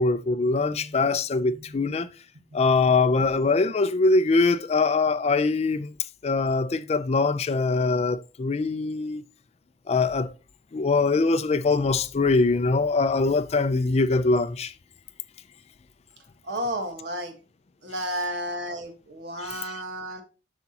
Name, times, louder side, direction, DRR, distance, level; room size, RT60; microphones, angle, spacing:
voice 1, 0.0-2.1 2.5-5.9 6.2-9.2 9.9-10.3 10.7-14.7 19.4-19.7, left 3 dB, 35° left, 0.4 m, -23 dB
voice 2, 0.5-1.0 1.4-1.8 2.5-2.6 16.4-17.3 17.8-20.2, right 1 dB, 70° right, 1.4 m, -33 dB
7.7 x 5.8 x 2.8 m
head